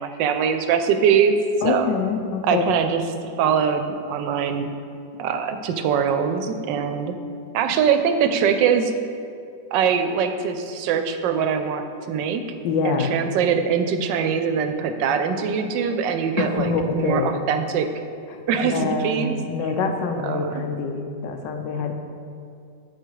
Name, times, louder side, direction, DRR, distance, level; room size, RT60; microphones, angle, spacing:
voice 1, 0.0-1.9 2.4-3.0 3.4-4.7 5.2-7.1 7.5-8.9 9.7-12.4 12.8-17.9 18.5-19.4 20.2-20.5, right 7 dB, 80° right, 7 dB, 1.2 m, -22 dB
voice 2, 1.6-3.0 12.6-13.1 16.4-17.3 18.3-21.9, left 4 dB, 85° left, 5 dB, 1.4 m, -25 dB
8.2 x 4.9 x 4.6 m, 2.4 s
omnidirectional pair, 2.0 m